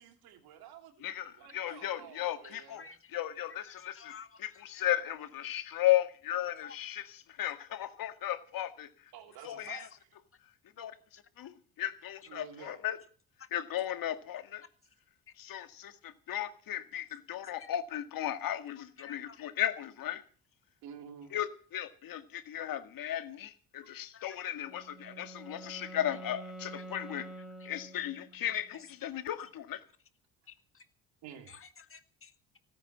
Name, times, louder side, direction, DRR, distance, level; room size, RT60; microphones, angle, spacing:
voice 1, 0.0-0.9 1.4-2.9 9.1-10.1 12.3-12.8 20.8-21.4 23.8-23.9 31.2-31.5, right 8 dB, 80° right, 6 dB, 2.9 m, -50 dB
voice 2, 1.0-2.8 3.1-4.1 4.4-8.9 9.4-9.9 10.8-10.9 11.4-13.0 13.5-14.6 15.4-20.2 21.3-27.3 27.7-29.8, left 12 dB, 65° left, 9 dB, 1.9 m, -35 dB
voice 3, 2.7-3.2 3.5-4.9 6.6-6.8 10.8-10.9 12.2-12.3 13.4-13.5 15.3-15.4 17.6-17.8 19.0-19.4 24.1-24.5 25.5-25.8 26.1-26.2 26.7-26.8 27.4-27.7 28.7-28.9 30.5-30.9 31.5-32.6, left 6 dB, 35° left, 9 dB, 2.0 m, -53 dB
Wind instrument woodwind instrument, 24.6-28.5, right 2 dB, ahead, 4.4 m, -47 dB
17.5 x 9.8 x 7.3 m, 0.40 s
supercardioid pair, 85°, 37 cm